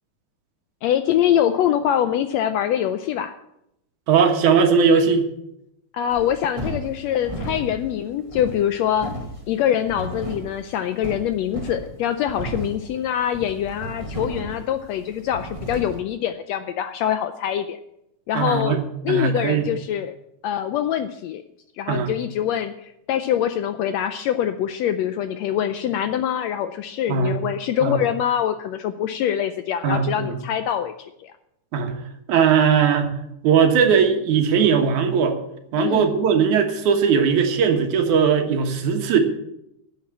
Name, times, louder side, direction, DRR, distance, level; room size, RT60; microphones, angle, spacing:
voice 1, 0.8-3.3 5.9-9.1 9.5-17.8 18.3-20.1 20.4-21.4 21.8-31.3 35.8-36.1, left 10 dB, 80° left, 9 dB, 1.6 m, -24 dB
voice 2, 4.1-5.3 12.4-12.5 18.3-18.8 19.1-19.7 21.9-22.1 27.1-27.3 27.8-28.0 29.8-30.3 31.7-32.0 32.3-33.1 33.4-35.4 35.7-39.2, right 6 dB, 75° right, 5 dB, 2.7 m, -19 dB
sound 1, 6.1-16.0, right 1 dB, 20° right, 1.0 m, -35 dB
10.5 x 8.1 x 8.5 m, 0.82 s
omnidirectional pair, 3.6 m